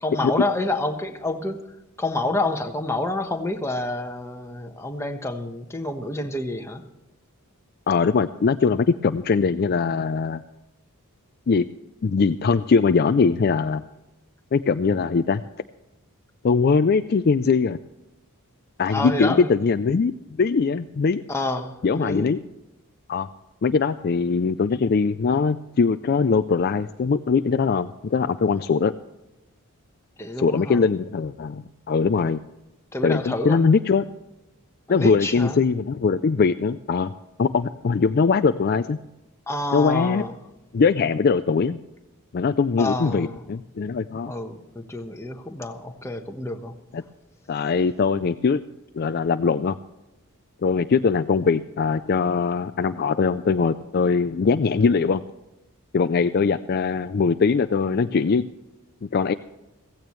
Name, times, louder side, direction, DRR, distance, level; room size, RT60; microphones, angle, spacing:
voice 1, 0.0-1.6 2.0-6.8 18.9-19.5 21.3-22.3 30.2-30.8 32.9-33.7 34.9-35.6 39.5-40.3 42.8-43.4 44.3-46.7, left 2 dB, 10° left, 4 dB, 1.2 m, -28 dB
voice 2, 7.9-10.4 11.5-11.6 12.0-13.8 14.5-15.4 16.4-17.8 18.8-20.1 20.4-21.2 21.8-22.4 23.1-23.3 23.6-28.9 30.4-32.4 33.0-34.1 34.9-37.1 37.4-39.0 39.7-40.2 40.7-41.8 42.3-44.3 46.9-47.0 47.5-48.6 48.9-49.8 50.6-55.2 55.9-58.5 59.0-59.3, left 5 dB, 45° left, 10 dB, 0.4 m, -21 dB
16.0 x 15.5 x 3.2 m, 0.98 s
head